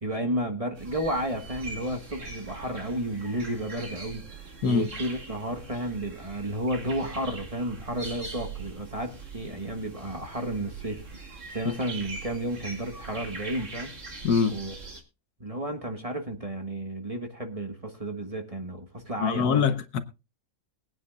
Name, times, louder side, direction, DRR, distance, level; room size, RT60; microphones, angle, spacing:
voice 1, 0.0-13.9 14.5-14.7 15.4-19.7, right 1 dB, 20° right, 1.5 m, -32 dB
sound 1, 0.8-15.0, right 3 dB, 50° right, 2.4 m, -42 dB
voice 2, 14.2-14.6 19.2-20.0, left 6 dB, 75° left, 1.4 m, -24 dB
22.0 x 9.7 x 2.4 m
omnidirectional pair, 1.7 m